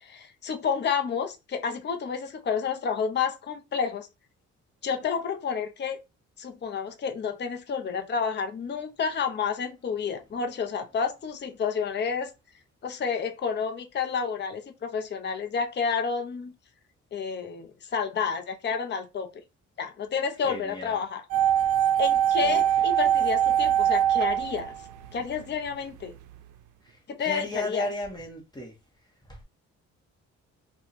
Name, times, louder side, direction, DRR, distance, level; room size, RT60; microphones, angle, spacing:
voice 1, 0.0-4.1 4.8-6.0 6.4-12.3 12.8-16.5 17.1-19.3 19.8-21.2 22.0-24.7 25.1-26.1 27.1-27.9, left 6 dB, 35° left, 0.7 m, -30 dB
voice 2, 20.4-20.9 22.4-22.6 27.2-28.7, left 1 dB, 15° left, 1.1 m, -34 dB
sound 1, 21.3-25.4 25.7-25.8, right 10 dB, 85° right, 0.5 m, -23 dB
2.8 x 2.4 x 4.0 m
cardioid pair, 90°, 30 cm